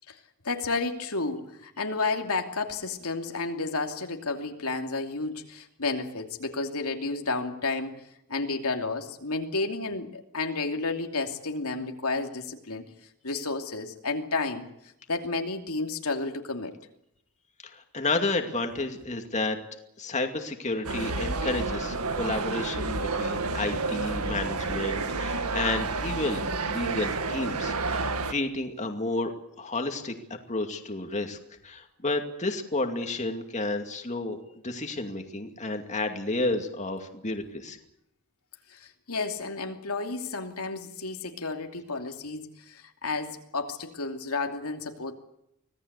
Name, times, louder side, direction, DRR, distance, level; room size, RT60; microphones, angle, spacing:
voice 1, 0.4-8.0 8.3-12.8 13.2-14.7 15.1-16.7 23.7-23.8 38.7-45.1, left 3 dB, 85° left, 4 dB, 2.8 m, -31 dB
voice 2, 17.6-19.6 20.0-29.3 29.6-31.4 31.6-34.4 34.6-37.8, left 2 dB, 30° left, 5 dB, 2.4 m, -31 dB
sound 1, 20.8-28.3, right 3 dB, 85° right, 2.0 m, -30 dB
25.5 x 18.0 x 8.3 m, 0.79 s
head